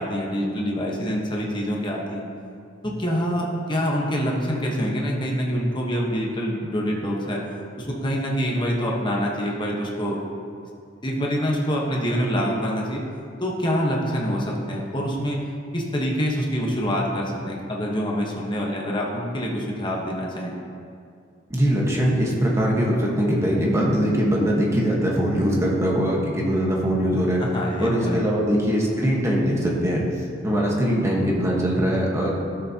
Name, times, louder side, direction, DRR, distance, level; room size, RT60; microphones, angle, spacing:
voice 1, 0.0-2.3 2.8-7.4 7.8-10.2 11.0-13.0 13.4-15.4 15.7-20.5 27.4-28.2, equal, 25° left, -2 dB, 1.2 m, -26 dB
voice 2, 21.5-27.5 27.8-30.1 30.4-32.3, equal, 15° right, -3 dB, 1.3 m, -22 dB
12.5 x 7.0 x 2.9 m, 2.4 s
head